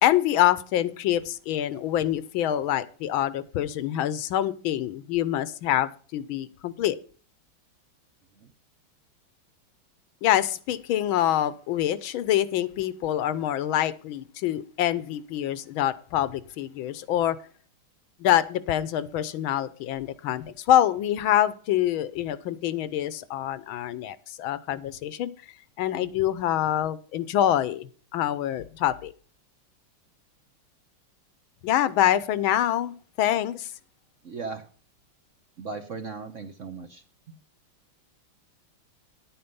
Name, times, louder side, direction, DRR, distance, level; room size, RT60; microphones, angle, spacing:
voice 1, 0.0-7.0 10.2-17.4 18.2-25.3 25.8-29.1 31.6-33.7, left 12 dB, 75° left, 17 dB, 1.5 m, -25 dB
voice 2, 34.2-34.6 35.6-37.0, right 4 dB, 50° right, 7 dB, 1.0 m, -37 dB
11.0 x 8.8 x 5.4 m, 0.41 s
omnidirectional pair, 2.3 m